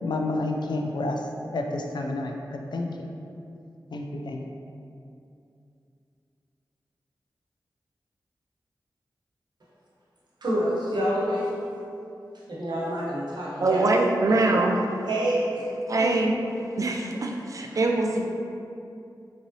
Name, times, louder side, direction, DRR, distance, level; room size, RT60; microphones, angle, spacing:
voice 1, 0.0-3.1 3.9-4.4, left 2 dB, 70° left, 3 dB, 0.4 m, -30 dB
voice 2, 10.4-11.5 12.5-13.8 14.3-14.4 15.1-15.7 16.0-16.1, right 1 dB, 65° right, -6 dB, 1.0 m, -27 dB
voice 3, 13.6-14.8 15.9-16.3 16.8-18.3, right 2 dB, 45° right, 1 dB, 0.4 m, -23 dB
3.7 x 3.1 x 2.7 m, 2.6 s
cardioid pair, 45°, 8 cm